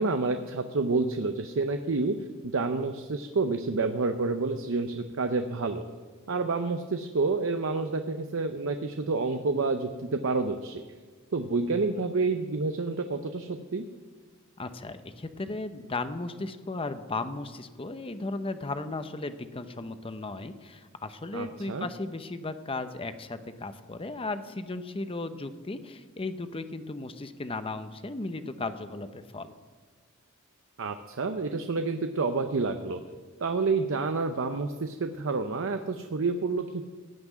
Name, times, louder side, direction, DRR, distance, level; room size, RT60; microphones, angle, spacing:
voice 1, 0.0-2.1 2.4-5.8 6.3-10.8 11.3-13.8 21.3-21.9 30.8-33.0 33.4-36.8, right 3 dB, 70° right, 7 dB, 0.7 m, -29 dB
voice 2, 14.6-29.5, left 2 dB, 25° left, 10 dB, 0.7 m, -36 dB
16.0 x 6.0 x 9.1 m, 1.4 s
head